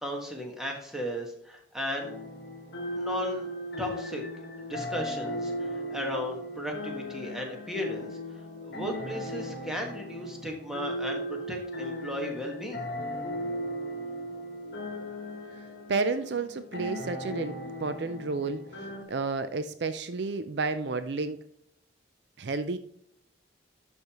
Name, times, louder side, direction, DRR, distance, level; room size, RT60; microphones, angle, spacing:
voice 1, 0.0-2.1 3.0-3.5 3.8-8.2 8.6-12.9, equal, 5° right, 1 dB, 1.5 m, -35 dB
sound 1, 2.0-19.0, equal, 55° left, 1.6 m, -37 dB
voice 2, 15.9-18.6 19.1-21.4 22.4-22.8, right 4 dB, 60° right, 11 dB, 0.5 m, -31 dB
12.0 x 5.3 x 3.0 m, 0.70 s
head